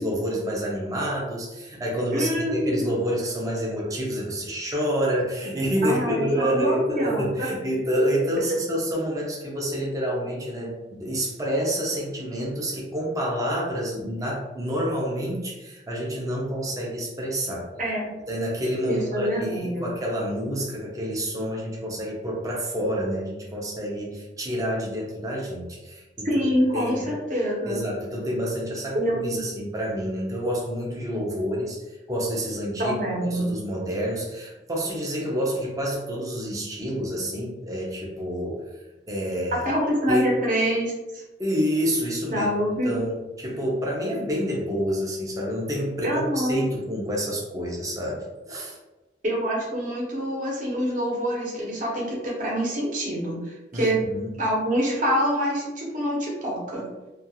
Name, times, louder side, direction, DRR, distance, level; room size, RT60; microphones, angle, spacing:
voice 1, 0.0-17.7 18.3-26.3 26.7-27.2 27.7-33.0 33.2-38.6 39.1-39.7 40.1-40.3 41.4-42.5 42.8-48.8 53.7-53.9 54.1-54.3, equal, 20° right, -3 dB, 0.5 m, -28 dB
voice 2, 2.1-2.8 5.8-7.5 17.8-18.1 18.9-19.9 26.2-27.8 28.9-29.4 32.8-33.5 39.5-41.2 42.3-43.0 46.0-46.6 49.2-54.0 54.4-56.9, equal, 45° right, -4 dB, 0.8 m, -26 dB
2.4 x 2.3 x 2.8 m, 1.1 s
head